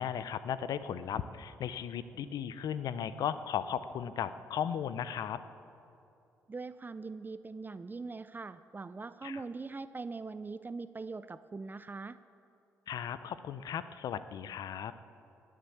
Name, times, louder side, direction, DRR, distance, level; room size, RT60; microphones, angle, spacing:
voice 1, 0.0-5.4 9.2-9.4 12.9-14.9, left 8 dB, 70° left, 13 dB, 0.6 m, -36 dB
voice 2, 6.5-12.2, right 4 dB, 30° right, 14 dB, 0.5 m, -42 dB
19.5 x 7.5 x 7.1 m, 2.7 s
supercardioid pair, 50°, 7 cm